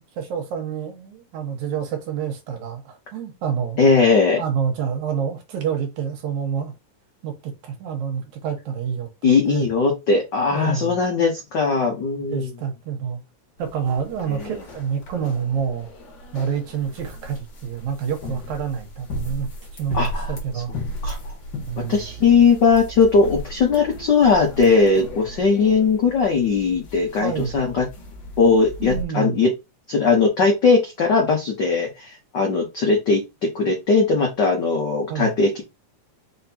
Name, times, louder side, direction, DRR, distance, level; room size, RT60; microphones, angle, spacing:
voice 1, 0.0-3.8 4.4-6.7 7.2-9.7 10.5-11.0 12.3-13.2 13.6-15.9 16.3-20.7 21.7-22.0 27.2-27.6 28.8-29.5 35.1-35.4, right 7 dB, 75° right, 2.4 m, -28 dB
voice 2, 3.8-4.4 9.2-12.5 14.3-14.5 19.9-20.3 21.0-21.3 21.8-27.9 28.4-29.5 29.9-35.6, left 4 dB, 80° left, 0.9 m, -19 dB
sound 1, 13.6-29.0, equal, 50° left, 1.7 m, -36 dB
4.8 x 3.6 x 2.8 m
omnidirectional pair, 3.4 m